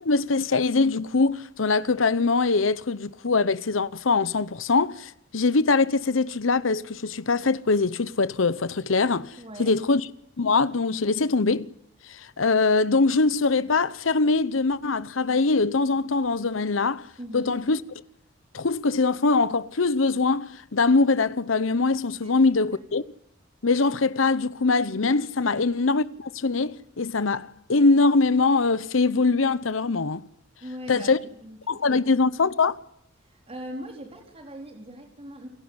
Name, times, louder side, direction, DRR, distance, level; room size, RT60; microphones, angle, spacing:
voice 1, 0.0-10.0 10.4-11.7 12.1-17.1 17.3-17.8 18.5-23.0 23.6-30.2 30.9-31.2 31.7-32.8, left 3 dB, 80° left, 0.9 m, -23 dB
voice 2, 9.4-9.8 17.2-17.6 22.2-22.4 22.7-22.8 25.4-25.7 30.6-32.1 33.2-35.5, equal, 30° right, 4.3 m, -41 dB
28.5 x 16.0 x 9.7 m
head